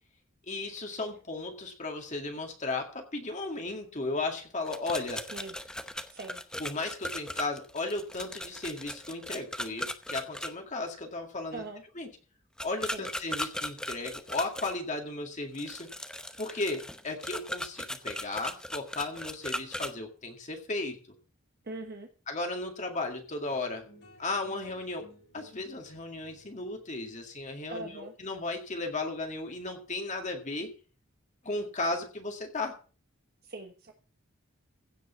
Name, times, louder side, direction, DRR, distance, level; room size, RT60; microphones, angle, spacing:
voice 1, 0.5-5.3 6.6-11.6 12.0-12.1 12.6-15.9 16.4-21.0 22.3-23.8 24.2-25.1 25.3-30.7 31.4-32.8, left 2 dB, 35° left, 3 dB, 2.1 m, -35 dB
sound 1, 4.6-10.5 12.6-14.7 15.5-19.9, left 1 dB, 5° left, 0.8 m, -38 dB
voice 2, 5.1-5.6 6.1-6.4 11.5-11.8 12.8-13.1 21.6-22.1 27.7-28.1 33.4-33.9, right 2 dB, 50° right, 4 dB, 1.2 m, -41 dB
sound 2, 23.1-29.8, left 1 dB, 55° left, 4.9 m, -58 dB
16.0 x 5.4 x 6.9 m, 0.38 s
head